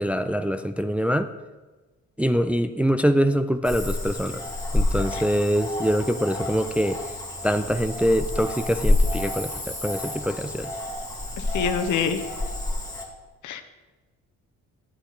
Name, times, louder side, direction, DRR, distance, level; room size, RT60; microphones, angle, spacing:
voice 1, 0.0-1.3 2.2-4.4 4.7-7.0 7.4-10.7, equal, 5° right, 9 dB, 0.3 m, -24 dB
Cricket / Frog, 3.6-13.1, left 2 dB, 10° left, 2.0 m, -28 dB
voice 2, 11.5-12.2 13.4-13.6, left 7 dB, 75° left, 8 dB, 0.9 m, -25 dB
8.4 x 8.3 x 4.0 m, 1.2 s
cardioid pair, 90°, 30 cm